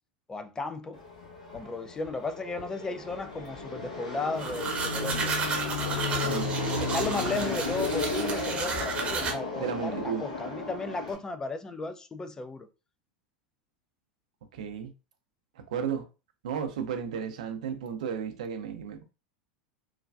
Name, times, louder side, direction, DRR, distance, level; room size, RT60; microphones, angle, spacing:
voice 1, 0.3-1.0 1.5-5.3 6.8-12.7, left 3 dB, 15° left, 0.4 m, -35 dB
Fixed-wing aircraft airplane, 0.9-11.1, left 3 dB, 80° left, 1.0 m, -34 dB
sound 1, 4.4-9.3, right 4 dB, 30° right, 0.7 m, -32 dB
voice 2, 9.6-10.3 14.5-14.9 15.6-16.1 16.4-19.0, right 7 dB, 65° right, 0.5 m, -33 dB
3.2 x 2.3 x 2.4 m
figure-of-eight pair, 85°, 4 cm